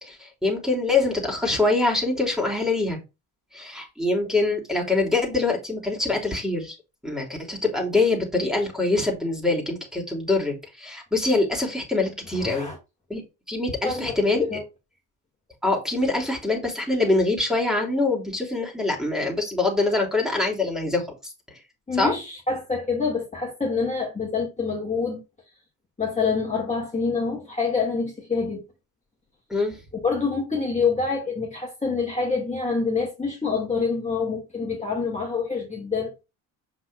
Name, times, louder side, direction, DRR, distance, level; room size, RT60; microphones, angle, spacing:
voice 1, 0.0-3.0 3.5-6.8 7.0-12.7 13.1-13.2 13.5-14.4 15.6-21.0 22.0-22.1 29.5-29.8, left 2 dB, ahead, 3.4 m, -24 dB
voice 2, 12.4-12.8 13.8-14.6 21.9-25.2 26.0-28.6 29.9-36.1, left 4 dB, 15° left, 2.6 m, -26 dB
6.7 x 5.9 x 2.6 m
supercardioid pair, 75°, 47 cm